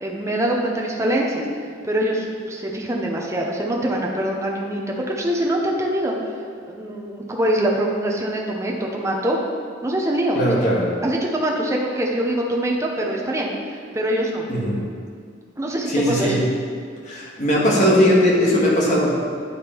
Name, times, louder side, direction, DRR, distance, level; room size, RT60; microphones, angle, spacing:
voice 1, 0.0-1.4 1.9-4.8 5.1-6.1 6.6-9.4 9.8-10.7 11.0-14.4 15.6-16.3, right 1 dB, 15° right, -1 dB, 0.7 m, -24 dB
voice 2, 10.3-10.9 14.5-14.8 15.9-16.4 17.0-19.1, equal, 40° left, -4 dB, 1.5 m, -18 dB
9.4 x 3.6 x 4.4 m, 2.1 s
head